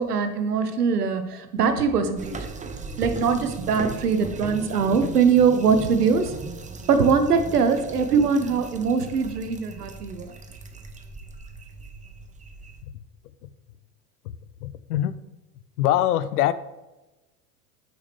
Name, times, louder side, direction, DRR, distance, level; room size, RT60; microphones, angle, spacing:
voice 1, 0.0-2.4 3.0-6.3 6.9-10.3, right 5 dB, 90° right, 8 dB, 1.0 m, -22 dB
sound 1, 2.2-12.8, right 4 dB, 15° right, 0.9 m, -38 dB
voice 2, 14.6-15.1 15.8-16.5, left 13 dB, 75° left, 15 dB, 0.7 m, -23 dB
9.2 x 6.1 x 3.3 m, 1.0 s
hypercardioid pair, 85°, 45 cm